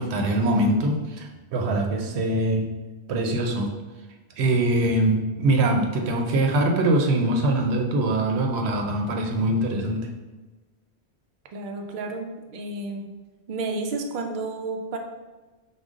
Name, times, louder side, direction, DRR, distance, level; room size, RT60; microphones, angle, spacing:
voice 1, 0.0-2.7 3.1-3.7 4.4-10.1, right 1 dB, 85° right, 2 dB, 0.9 m, -23 dB
voice 2, 11.5-12.3 12.5-13.1 13.5-15.0, right 3 dB, 60° right, 3 dB, 0.6 m, -31 dB
5.0 x 2.2 x 3.6 m, 1.2 s
omnidirectional pair, 1.1 m